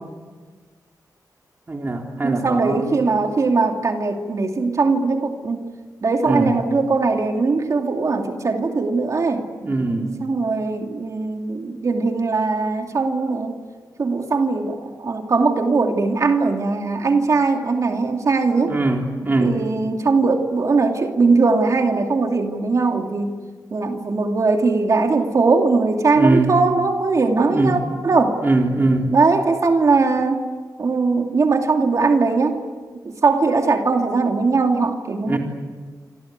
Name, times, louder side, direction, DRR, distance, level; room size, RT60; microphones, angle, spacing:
voice 1, 1.7-2.9 6.3-6.5 9.6-10.1 18.6-19.6 26.2-26.5 27.5-27.8 28.4-29.1 35.2-35.4, right 2 dB, 30° right, 1 dB, 4.0 m, -21 dB
voice 2, 2.2-5.6 6.0-9.5 10.2-13.6 14.0-18.8 19.4-23.4 23.7-28.4 29.1-30.5 30.8-32.6 33.0-35.4, right 4 dB, 50° right, 3 dB, 2.7 m, -20 dB
28.0 x 25.5 x 8.2 m, 1.5 s
wide cardioid pair, 100°, 7 cm